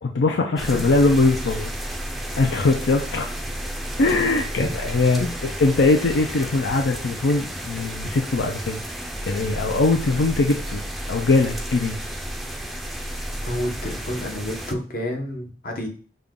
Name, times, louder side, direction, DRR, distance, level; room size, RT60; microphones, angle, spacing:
voice 1, 0.0-1.7 2.4-3.3 4.0-8.8 9.2-10.8 11.1-12.0, left 3 dB, 85° left, 3 dB, 0.5 m, -21 dB
sound 1, 0.6-14.7, equal, ahead, 0.4 m, -32 dB
voice 2, 13.5-15.9, left 1 dB, 55° left, 2 dB, 1.0 m, -29 dB
5.4 x 2.3 x 3.6 m, 0.41 s
head